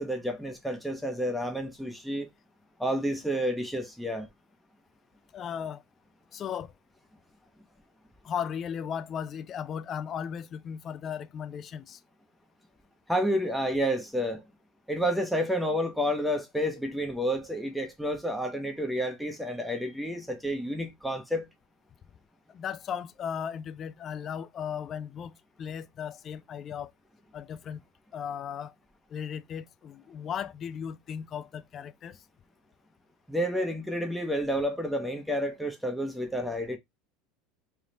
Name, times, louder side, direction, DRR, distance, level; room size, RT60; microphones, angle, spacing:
voice 1, 0.0-2.3 2.8-4.3 13.1-14.4 14.9-21.5 33.3-36.8, equal, ahead, 0.8 m, -30 dB
voice 2, 5.3-5.8 6.3-6.7 8.2-12.0 22.5-26.9 27.3-27.8 28.1-28.7 29.1-32.2, left 8 dB, 35° left, 0.4 m, -36 dB
3.4 x 2.4 x 4.0 m
supercardioid pair, 115°, 0 cm